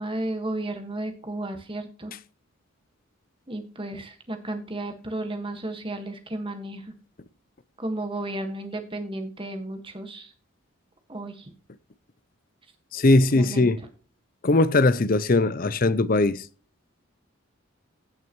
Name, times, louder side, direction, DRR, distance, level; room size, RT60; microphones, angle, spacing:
voice 1, 0.0-2.1 3.5-6.9 7.8-10.3 11.1-11.5 13.3-13.7, right 1 dB, 25° right, 1.6 m, -33 dB
voice 2, 12.9-13.8 14.4-16.4, left 2 dB, 45° left, 0.6 m, -20 dB
16.0 x 6.2 x 3.1 m
head